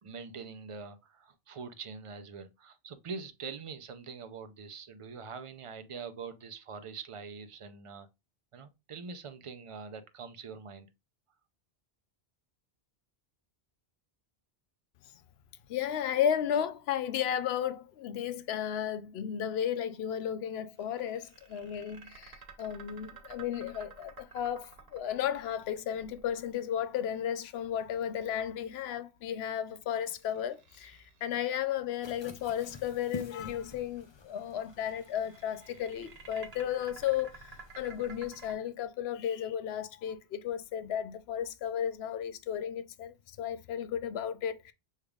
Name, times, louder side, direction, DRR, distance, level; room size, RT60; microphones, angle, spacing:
voice 1, 0.0-8.1 8.5-10.9, right 5 dB, 45° right, 0.5 m, -44 dB
voice 2, 15.7-44.7, left 9 dB, 85° left, 0.8 m, -34 dB
sound 1, 20.8-27.0 29.8-31.4 31.9-33.3 34.5-38.5, right 5 dB, 80° right, 1.2 m, -53 dB
sound 2, 32.0-38.5, left 3 dB, 40° left, 0.4 m, -49 dB
6.3 x 3.4 x 2.3 m
omnidirectional pair, 1.0 m